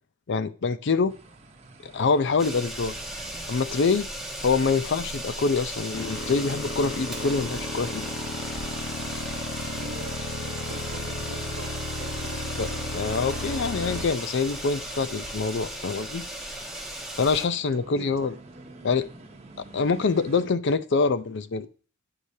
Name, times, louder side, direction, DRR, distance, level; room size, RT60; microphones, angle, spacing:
voice 1, 0.3-1.1 1.8-2.9 3.5-4.1 4.4-8.0 12.6-12.7 12.9-16.2 17.2-18.3 18.8-19.1 19.7-21.7, left 4 dB, 60° left, 0.5 m, -25 dB
sound 1, 1.1-20.5, right 2 dB, 30° right, 0.9 m, -50 dB
sound 2, 2.4-17.5, right 1 dB, ahead, 1.1 m, -36 dB
sound 3, 5.9-14.0, left 2 dB, 85° left, 0.9 m, -34 dB
voice 2, 9.7-12.9 17.7-18.4, right 3 dB, 65° right, 0.7 m, -43 dB
8.8 x 4.9 x 2.7 m
head